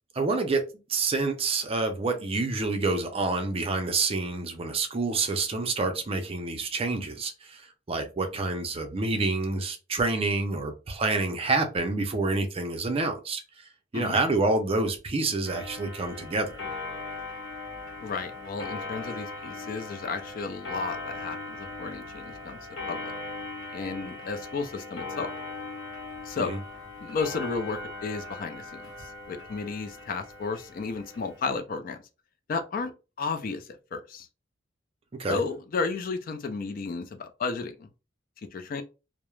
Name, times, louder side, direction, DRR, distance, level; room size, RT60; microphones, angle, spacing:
voice 1, 0.1-0.6 0.9-13.4 13.9-16.6 26.4-26.6 35.2-35.4, right 3 dB, 30° right, 0.4 m, -28 dB
Clock, 15.4-31.6, left 3 dB, 80° left, 0.8 m, -39 dB
voice 2, 18.0-22.6 22.9-23.1 23.7-25.3 26.2-26.5 27.0-32.0 32.5-32.9 33.2-34.3 35.3-37.9 38.5-38.8, left 4 dB, 50° left, 0.4 m, -33 dB
2.3 x 2.0 x 3.0 m
head